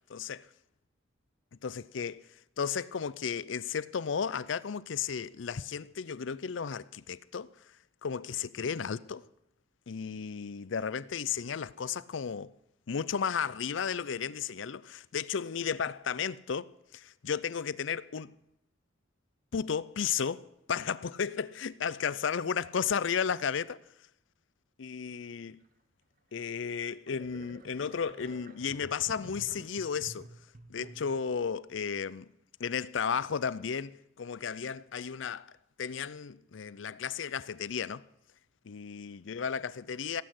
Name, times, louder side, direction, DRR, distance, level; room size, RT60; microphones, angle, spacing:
voice 1, 0.1-0.5 1.6-2.2 2.6-7.5 8.0-9.2 9.9-12.5 12.9-16.7 16.9-18.3 19.5-23.8 24.8-25.6 26.3-30.3 30.7-32.3 32.6-35.5 35.8-38.0 38.7-40.2, left 6 dB, 70° left, 0.5 m, -34 dB
sound 1, 26.4-26.5 27.1-31.3, right 2 dB, 45° right, 1.0 m, -51 dB
16.5 x 8.6 x 7.8 m
head